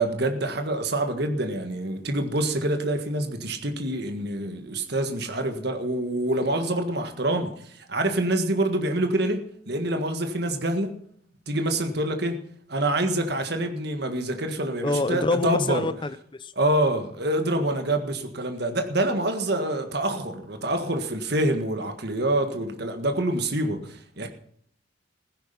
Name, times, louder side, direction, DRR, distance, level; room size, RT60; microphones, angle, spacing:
voice 1, 0.0-11.0 11.5-12.4 12.7-15.9 16.6-24.3, right 1 dB, 55° right, 1.7 m, -26 dB
voice 2, 14.8-16.5, left 2 dB, 25° left, 0.7 m, -26 dB
15.5 x 10.5 x 5.7 m
head